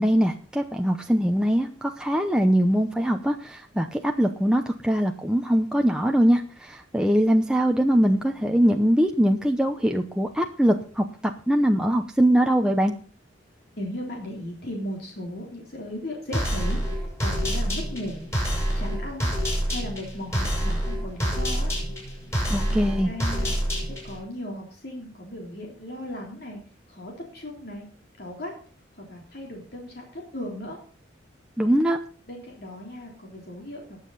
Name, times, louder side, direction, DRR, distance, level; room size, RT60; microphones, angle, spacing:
voice 1, 0.0-11.0 11.5-12.9 22.5-23.1 31.6-32.0, equal, 5° right, 3 dB, 0.7 m, -22 dB
voice 2, 13.8-18.3 18.7-19.3 19.7-21.7 22.3-26.6 26.9-27.9 28.2-28.5 28.9-30.8 32.3-34.0, left 1 dB, 55° left, -1 dB, 3.6 m, -37 dB
sound 1, 16.3-24.2, equal, 15° left, 6.9 m, -27 dB
20.0 x 7.5 x 4.0 m, 0.41 s
head